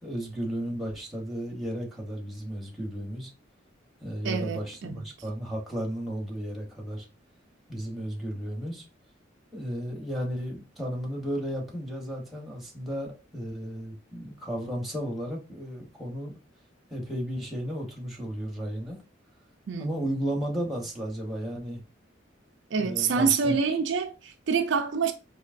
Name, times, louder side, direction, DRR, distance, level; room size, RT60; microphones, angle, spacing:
voice 1, 0.0-3.3 4.0-7.0 7.7-8.8 9.5-16.3 16.9-19.0 19.8-21.8 22.8-23.5, equal, ahead, 1.0 m, -34 dB
voice 2, 4.2-5.0 19.7-20.1 22.7-25.1, right 5 dB, 65° right, 0.4 m, -27 dB
4.5 x 2.9 x 2.4 m
head